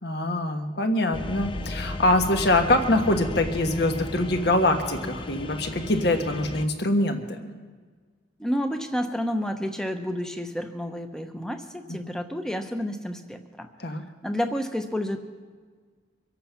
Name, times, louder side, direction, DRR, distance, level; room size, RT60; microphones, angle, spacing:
voice 1, 0.0-7.5 11.9-12.0 13.8-14.0, left 1 dB, 55° left, 6 dB, 1.4 m, -24 dB
sound 1, 1.1-6.7, left 1 dB, 25° left, 0.5 m, -34 dB
voice 2, 8.4-13.7 14.2-15.2, equal, 5° left, 6 dB, 0.9 m, -30 dB
24.5 x 8.5 x 5.8 m, 1.5 s
head